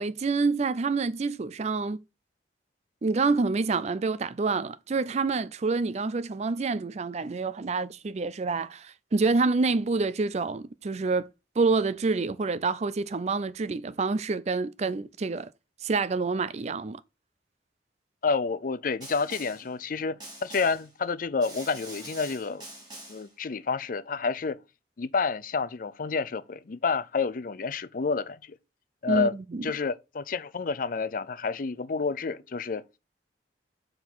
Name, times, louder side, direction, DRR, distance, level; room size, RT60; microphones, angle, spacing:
voice 1, 0.0-2.0 3.0-11.3 11.6-15.5 15.8-17.0 29.1-29.7, right 4 dB, 40° right, 0.4 m, -27 dB
voice 2, 18.2-22.6 23.1-24.6 25.0-28.6 29.0-29.3 29.6-32.8, left 4 dB, 50° left, 0.5 m, -29 dB
Snare drum, 19.0-19.7 20.2-20.9 21.4-23.3, right 1 dB, 25° right, 3.1 m, -44 dB
7.1 x 3.8 x 6.1 m
head